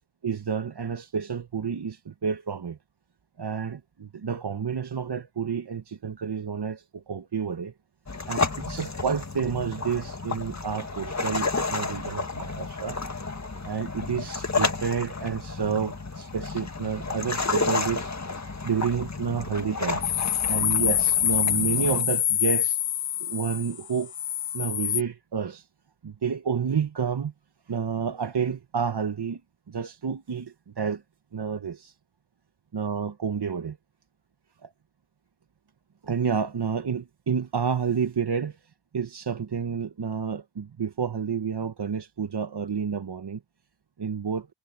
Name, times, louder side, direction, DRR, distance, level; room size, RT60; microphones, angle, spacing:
voice 1, 0.2-2.8 3.4-7.7 8.3-13.0 13.6-18.1 18.6-20.0 20.5-22.8 23.2-24.1 24.5-25.7 26.0-27.3 27.7-29.4 29.7-31.0 31.3-31.9 32.7-33.8 34.6-34.7 36.0-38.6 38.9-43.4 44.0-44.5, right 6 dB, 55° right, 1.0 m, -30 dB
sound 1, 8.1-22.0, left 3 dB, 35° left, 1.8 m, -31 dB
sound 2, 20.0-25.0, left 11 dB, 75° left, 0.7 m, -26 dB
wide cardioid pair, 80°, 48 cm